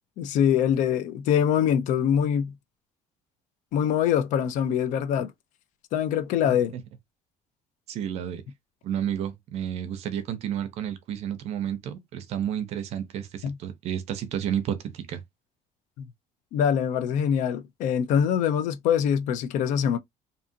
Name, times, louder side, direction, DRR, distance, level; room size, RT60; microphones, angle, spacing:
voice 1, 0.2-2.5 3.7-5.3 5.9-6.7 13.4-13.6 16.0-16.1 16.5-20.0, left 8 dB, 70° left, 0.5 m, -24 dB
voice 2, 6.4-6.8 7.9-8.4 8.8-15.2, right 9 dB, 55° right, 0.6 m, -31 dB
2.7 x 2.4 x 2.6 m
cardioid pair, 170°, 13 cm